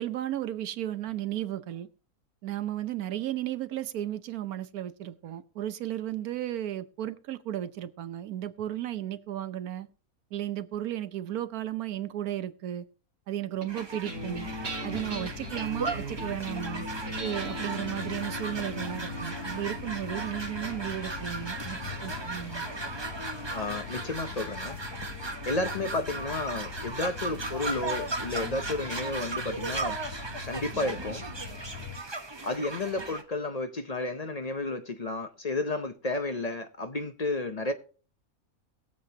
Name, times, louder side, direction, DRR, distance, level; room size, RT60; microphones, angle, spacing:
voice 1, 0.0-1.9 2.4-9.9 10.3-12.8 13.3-14.5 14.8-16.9 17.2-22.7, right 12 dB, 85° right, 1.3 m, -34 dB
sound 1, 13.6-24.2, equal, 60° right, 2.3 m, -40 dB
sound 2, 13.7-33.2, right 3 dB, 20° right, 0.9 m, -37 dB
sound 3, 14.1-32.0, left 6 dB, 85° left, 1.8 m, -43 dB
voice 2, 23.5-24.8 25.5-30.0 30.5-31.2 32.4-37.7, left 2 dB, 40° left, 0.6 m, -32 dB
21.0 x 7.4 x 2.8 m
omnidirectional pair, 1.5 m